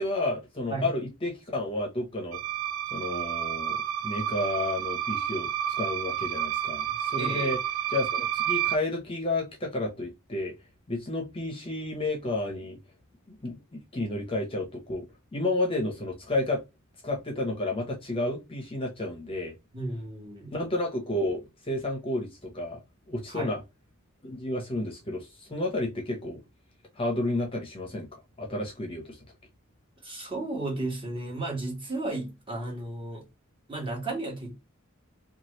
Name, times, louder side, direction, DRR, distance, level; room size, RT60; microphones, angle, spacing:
voice 1, 0.0-2.4 2.9-3.8 4.0-5.5 5.8-7.6 7.9-10.5 10.9-12.8 13.3-15.1 15.3-16.6 17.0-19.5 20.5-22.8 23.1-23.6 24.2-26.4 27.0-29.2, left 2 dB, 25° left, 0.8 m, -31 dB
sound 1, 2.3-8.8, right 10 dB, 70° right, 0.3 m, -30 dB
voice 2, 7.2-7.5 19.7-20.6 23.3-23.6 30.0-33.3 33.7-34.6, right 2 dB, 25° right, 1.4 m, -34 dB
2.9 x 2.4 x 3.0 m
head